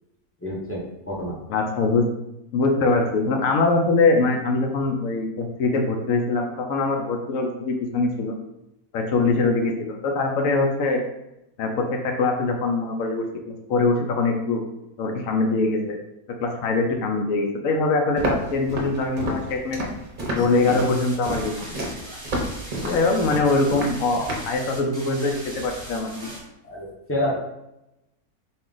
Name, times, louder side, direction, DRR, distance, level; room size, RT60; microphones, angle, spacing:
voice 1, 0.4-1.4 26.6-27.4, left 1 dB, 15° left, -4 dB, 0.4 m, -28 dB
voice 2, 1.5-2.0 2.5-8.3 8.9-11.0 11.6-14.7 15.0-16.0 16.4-19.8 20.3-21.7 22.8-26.3, left 3 dB, 70° left, 3 dB, 0.9 m, -23 dB
Walk footsteps, 18.2-24.5, right 1 dB, 40° right, 0.7 m, -30 dB
sound 1, 20.4-26.4, right 1 dB, 15° right, 1.1 m, -40 dB
4.0 x 2.4 x 3.8 m, 0.89 s
omnidirectional pair, 1.6 m